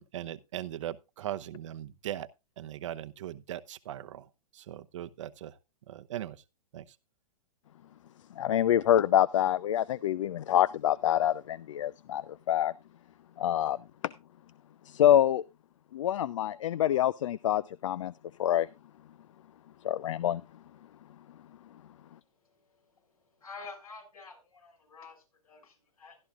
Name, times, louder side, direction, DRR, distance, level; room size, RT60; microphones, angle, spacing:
voice 1, 0.0-2.3 2.6-4.2 4.6-5.5 5.9-6.4 6.7-6.8, right 12 dB, 55° right, 0.8 m, -39 dB
voice 2, 8.4-12.7 13.4-13.8 14.9-15.4 15.9-18.1 18.4-18.7 19.8-20.4, left 11 dB, 60° left, 0.5 m, -26 dB
voice 3, 22.4-22.8 23.2-26.2, left 4 dB, 75° left, 6.2 m, -49 dB
14.0 x 12.0 x 2.4 m
figure-of-eight pair, 110°, 19 cm